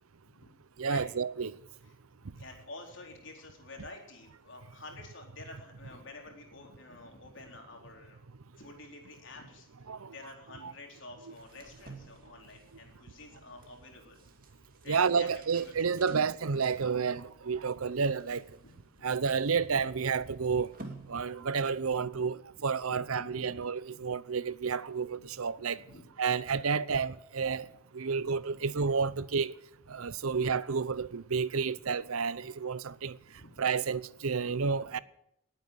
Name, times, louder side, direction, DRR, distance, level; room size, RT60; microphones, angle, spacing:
voice 1, 0.8-1.6 9.9-10.1 10.6-10.7 11.3-11.4 14.9-18.4 19.0-20.7 21.1-25.8 26.2-27.7 27.9-29.5 29.9-33.2 33.6-35.0, right 5 dB, 85° right, 0.7 m, -30 dB
voice 2, 2.2-8.2 8.6-9.7 10.1-14.2 14.8-15.7 18.6-18.7 19.0-19.3 21.9-22.1 22.9-23.6 23.9-24.0 25.2-25.3 25.7-26.1 27.5-27.7 28.1-28.6 30.3-30.4 32.4-32.5 33.4-33.5 34.8-35.0, left 2 dB, 60° left, 4.2 m, -50 dB
sound 1, 11.3-21.8, right 2 dB, 40° right, 2.3 m, -54 dB
19.5 x 9.2 x 7.7 m
head